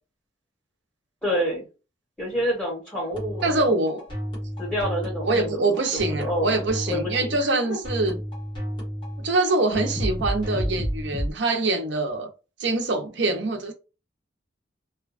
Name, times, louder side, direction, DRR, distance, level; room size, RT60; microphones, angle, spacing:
voice 1, 1.2-1.6 2.2-3.8 4.6-6.6 6.9-7.8 9.7-9.9, equal, 5° left, 1.2 m, -29 dB
sound 1, 3.1-11.3, equal, 25° left, 1.1 m, -31 dB
voice 2, 3.4-4.1 5.2-8.2 9.2-12.3 12.6-13.7, right 2 dB, 75° right, 0.6 m, -24 dB
2.7 x 2.2 x 2.4 m
head